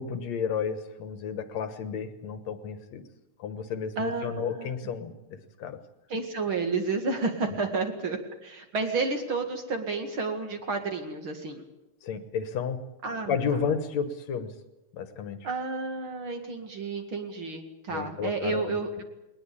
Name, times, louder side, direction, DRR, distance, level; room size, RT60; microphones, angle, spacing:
voice 1, 0.0-3.0 3.4-5.8 7.5-7.6 12.0-12.9 13.3-14.5 14.9-15.5 17.9-18.8, left 6 dB, 65° left, 10 dB, 2.4 m, -32 dB
voice 2, 4.0-4.7 6.1-11.6 13.0-13.4 15.4-19.0, right 4 dB, 45° right, 5 dB, 2.7 m, -31 dB
20.5 x 19.5 x 8.6 m, 0.97 s
omnidirectional pair, 3.4 m